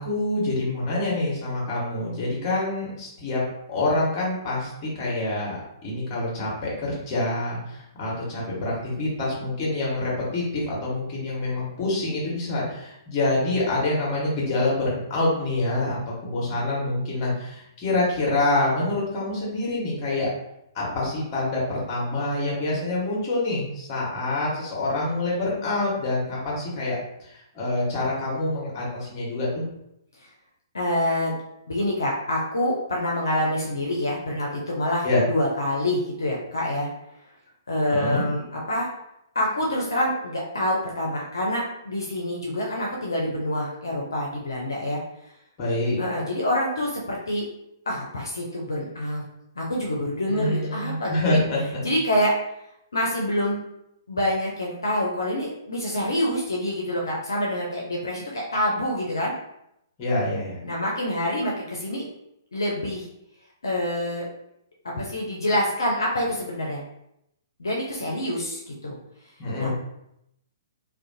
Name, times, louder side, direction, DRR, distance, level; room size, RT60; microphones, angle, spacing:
voice 1, 0.0-3.4 3.7-20.3 20.7-26.9 27.2-29.6 35.0-35.2 37.9-38.2 45.6-46.0 50.3-51.8 60.0-60.6 69.4-69.7, left 2 dB, 35° left, -4 dB, 1.2 m, -26 dB
voice 2, 30.7-31.4 31.7-36.9 37.7-38.9 39.3-45.0 46.0-47.5 47.9-49.2 49.6-51.4 51.8-52.3 52.9-53.6 54.1-59.3 60.6-62.1 62.5-63.1 63.6-64.3 64.8-66.8 67.6-69.0 69.6-69.7, left 1 dB, 75° left, -3 dB, 0.5 m, -26 dB
2.4 x 2.2 x 2.6 m, 0.80 s
figure-of-eight pair, 120°, 2 cm